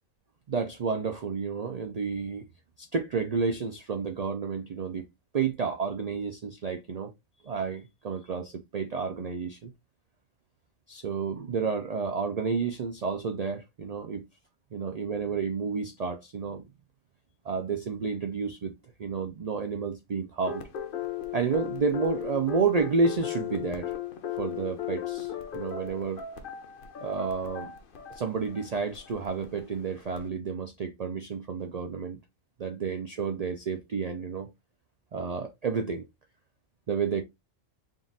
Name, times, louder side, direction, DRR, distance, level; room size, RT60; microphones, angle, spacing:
voice 1, 0.5-2.5 2.8-5.1 5.3-7.1 7.4-9.7 10.9-14.3 14.7-16.7 17.4-18.7 19.0-20.7 21.3-23.9 24.4-26.2 27.0-27.7 28.1-32.2 32.6-34.5 35.1-36.0 36.9-37.2, right 5 dB, 80° right, 0.3 m, -30 dB
sound 1, 20.4-30.3, left 9 dB, 50° left, 0.8 m, -37 dB
3.8 x 2.4 x 3.9 m
omnidirectional pair, 1.3 m